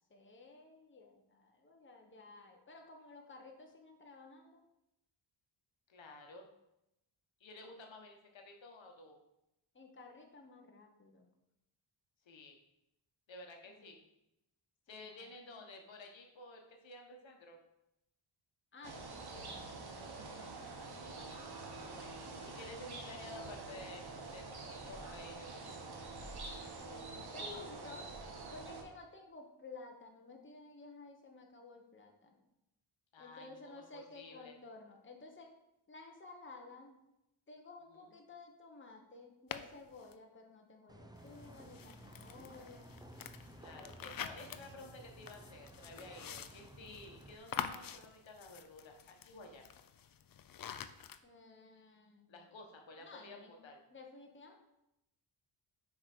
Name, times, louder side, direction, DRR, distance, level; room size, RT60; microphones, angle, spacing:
voice 1, 0.1-4.6 9.7-11.3 13.7-13.8 14.9-15.3 18.7-20.5 26.6-28.1 28.5-32.4 33.2-35.5 35.9-36.9 37.5-42.9 51.2-52.3 53.0-53.6 53.9-54.5, left 3 dB, 25° left, 1 dB, 1.1 m, -54 dB
voice 2, 5.9-6.5 7.4-9.2 12.2-12.6 13.3-14.0 14.9-17.6 20.8-25.7 33.1-34.6 37.9-38.2 43.6-49.6 52.3-53.8, left 2 dB, 65° left, 3 dB, 1.2 m, -53 dB
sound 1, 18.8-28.8, right 3 dB, 50° right, 1.2 m, -46 dB
sound 2, 39.5-40.1 41.2-51.2, left 8 dB, 45° left, 0.5 m, -47 dB
sound 3, 40.9-47.3, right 1 dB, 10° right, 0.4 m, -55 dB
5.8 x 4.8 x 5.9 m, 0.87 s
wide cardioid pair, 100°, 50 cm